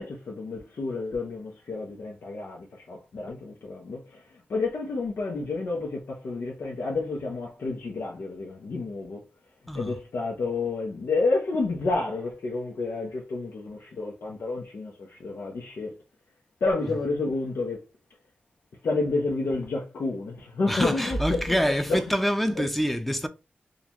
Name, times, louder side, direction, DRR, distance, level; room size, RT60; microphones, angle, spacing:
voice 1, 0.0-9.2 9.7-16.0 16.6-17.8 18.8-21.2 21.4-22.0 22.6-22.7, left 3 dB, 90° left, 0.8 m, -30 dB
voice 2, 9.7-10.0 16.9-17.0 20.7-23.3, equal, 5° left, 0.5 m, -26 dB
3.8 x 2.4 x 2.9 m
wide cardioid pair, 90°, 4 cm